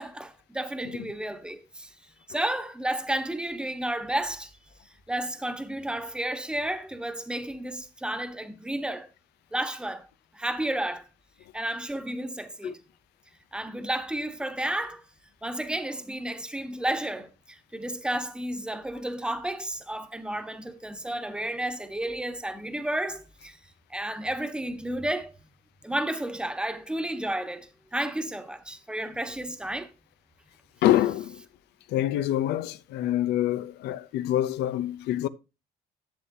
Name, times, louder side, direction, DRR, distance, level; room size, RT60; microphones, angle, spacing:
voice 1, 0.0-1.9 2.3-4.5 5.1-9.1 9.5-10.1 10.3-11.0 11.5-12.8 13.5-15.0 15.4-23.6 23.9-25.3 25.8-29.9, right 1 dB, 5° right, 1.3 m, -32 dB
voice 2, 30.8-31.4 31.9-35.3, left 13 dB, 80° left, 0.6 m, -26 dB
11.5 x 7.6 x 2.8 m
cardioid pair, 110°, 17 cm